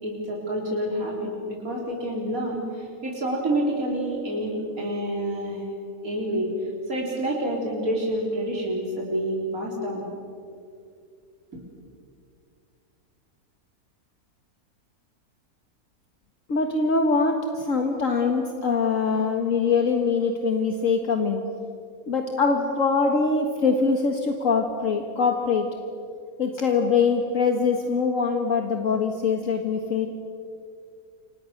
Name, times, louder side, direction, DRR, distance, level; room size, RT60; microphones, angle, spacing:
voice 1, 0.0-5.7 6.0-6.5 6.9-10.0, right 1 dB, 65° right, -2 dB, 4.4 m, -28 dB
voice 2, 16.5-21.5 22.1-25.7 26.4-30.1, left 4 dB, 60° left, 4 dB, 2.0 m, -23 dB
30.0 x 26.0 x 6.6 m, 2.5 s
omnidirectional pair, 1.5 m